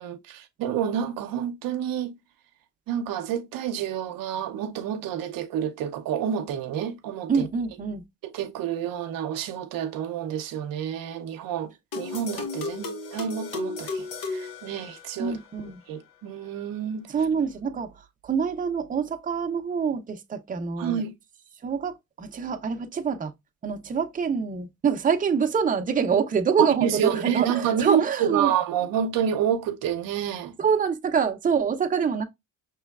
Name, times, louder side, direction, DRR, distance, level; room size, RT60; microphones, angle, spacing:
voice 1, 0.0-2.2 2.9-7.5 8.2-11.7 12.0-15.4 15.9-17.1 20.8-21.1 26.6-30.5, right 9 dB, 80° right, 0.7 m, -28 dB
voice 2, 7.3-8.0 15.2-15.8 17.1-21.0 21.6-23.3 23.6-28.5 30.6-32.2, right 6 dB, 25° right, 0.6 m, -26 dB
sound 1, 11.9-15.4, left 3 dB, 85° left, 1.1 m, -34 dB
5.5 x 3.1 x 2.3 m
cardioid pair, 95°, 34 cm